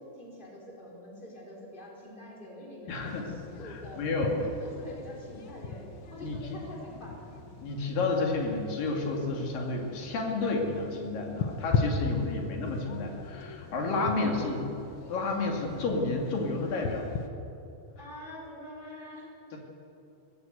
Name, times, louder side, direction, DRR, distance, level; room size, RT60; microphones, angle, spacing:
voice 1, 0.0-4.0 4.3-5.9 6.1-7.2 12.0-12.8 14.0-14.5 18.0-19.6, left 1 dB, 15° left, -3 dB, 4.6 m, -45 dB
voice 2, 2.9-3.3 3.6-4.4 6.2-6.6 7.6-14.6 15.1-17.1 19.5-19.6, left 3 dB, 80° left, 1 dB, 4.0 m, -31 dB
sound 1, 2.9-17.3, left 4 dB, 65° left, 1.3 m, -38 dB
22.0 x 16.0 x 8.1 m, 2.8 s
omnidirectional pair, 3.9 m